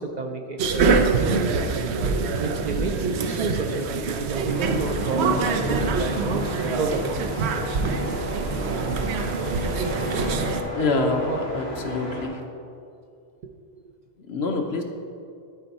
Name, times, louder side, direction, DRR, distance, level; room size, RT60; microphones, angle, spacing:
voice 1, 0.0-1.5 2.4-6.5 6.8-7.5 10.8-11.4 11.8-12.0 13.7-13.8, right 3 dB, 55° right, 4 dB, 0.5 m, -31 dB
sound 1, 0.6-10.6, right 4 dB, 90° right, 0.9 m, -25 dB
sound 2, 4.5-12.3, equal, 70° right, 1.8 m, -32 dB
voice 2, 10.8-12.4 14.3-14.8, left 3 dB, 75° left, 3 dB, 1.1 m, -26 dB
13.0 x 4.4 x 4.1 m, 2.4 s
omnidirectional pair, 1.1 m